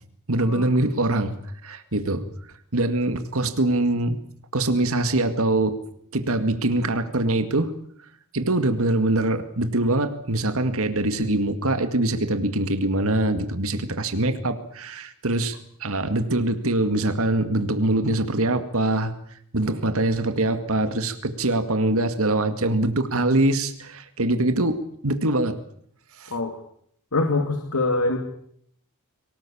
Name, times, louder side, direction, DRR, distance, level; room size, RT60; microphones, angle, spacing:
voice 1, 0.3-1.4 1.6-2.2 2.7-4.2 4.5-5.8 6.1-7.7 8.3-19.1 19.5-25.6 26.2-26.3, right 2 dB, 65° right, 9 dB, 2.1 m, -23 dB
voice 2, 27.1-28.2, left 2 dB, 75° left, 4 dB, 2.5 m, -24 dB
23.5 x 19.5 x 8.6 m, 0.67 s
head